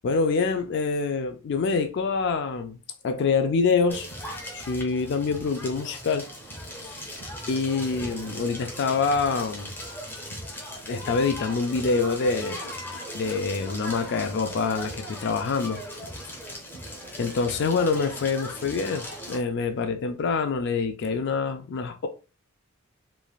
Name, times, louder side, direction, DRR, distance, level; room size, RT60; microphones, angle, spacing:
voice 1, 0.0-4.1 4.5-6.3 6.8-7.0 7.5-9.7 10.9-12.6 13.1-15.8 17.2-22.1, left 4 dB, 55° left, 0.3 m, -26 dB
Crackle, 3.9-19.4, equal, 10° left, 0.7 m, -38 dB
3.1 x 2.5 x 2.3 m
head